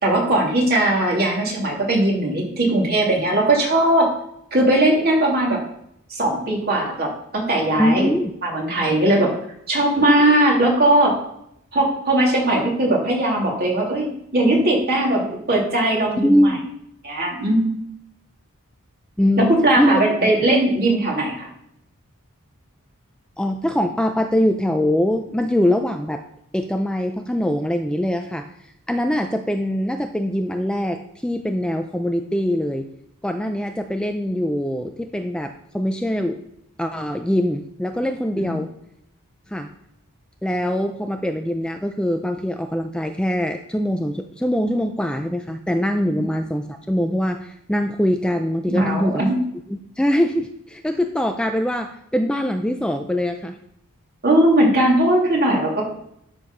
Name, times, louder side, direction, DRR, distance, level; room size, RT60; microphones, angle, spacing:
voice 1, 0.0-4.1 4.5-5.6 6.1-8.1 8.4-9.3 9.7-11.2 11.7-16.5 17.0-17.8 19.4-21.5 38.3-38.6 46.1-46.2 48.7-49.4 54.2-55.9, right 1 dB, 45° right, -2 dB, 2.9 m, -19 dB
voice 2, 7.8-8.3 16.2-16.7 19.2-20.3 23.4-26.2 26.5-28.5 28.9-32.9 33.2-36.4 36.8-38.7 39.5-39.7 40.4-49.2 49.7-53.6, equal, 5° left, 5 dB, 0.4 m, -23 dB
12.0 x 4.5 x 5.4 m, 0.75 s
head